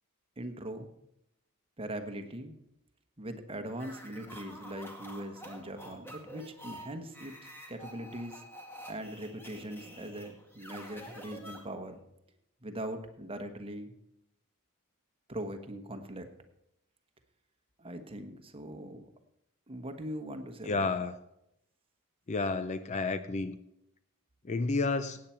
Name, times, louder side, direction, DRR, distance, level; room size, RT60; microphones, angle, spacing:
voice 1, 0.4-0.9 1.8-2.5 3.2-7.3 7.7-8.4 8.9-12.0 12.6-13.9 15.3-16.3 17.8-19.1 19.7-21.0, right 1 dB, 25° right, 6 dB, 1.2 m, -41 dB
sound 1, 3.7-12.0, equal, 10° left, 1.9 m, -48 dB
voice 2, 20.6-21.1 22.3-23.6 24.4-25.2, left 3 dB, 30° left, 12 dB, 0.5 m, -31 dB
17.5 x 8.7 x 4.5 m, 0.82 s
head